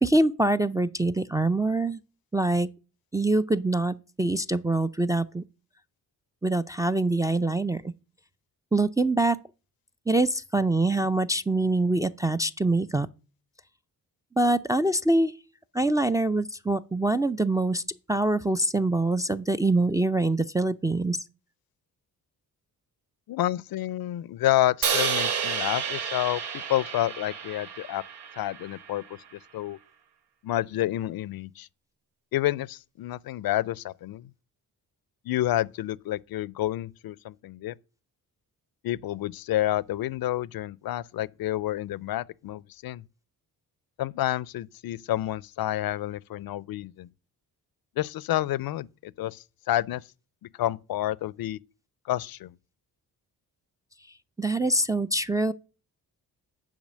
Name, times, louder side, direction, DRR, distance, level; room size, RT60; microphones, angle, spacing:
voice 1, 0.0-2.0 2.3-2.7 3.1-5.4 6.4-7.8 8.7-9.4 10.1-13.1 14.4-15.3 15.7-17.8 18.1-21.2 54.4-55.5, right 2 dB, 10° right, 0.3 m, -24 dB
voice 2, 23.3-28.0 28.4-29.0 29.3-29.8 30.4-31.7 32.3-34.3 35.2-37.8 38.8-43.0 44.0-47.1 48.0-50.0 50.6-51.6 52.0-52.5, left 14 dB, 65° left, 0.5 m, -29 dB
Crash cymbal, 24.8-29.0, right 7 dB, 85° right, 0.9 m, -30 dB
7.3 x 5.0 x 6.2 m
cardioid pair, 70°, 39 cm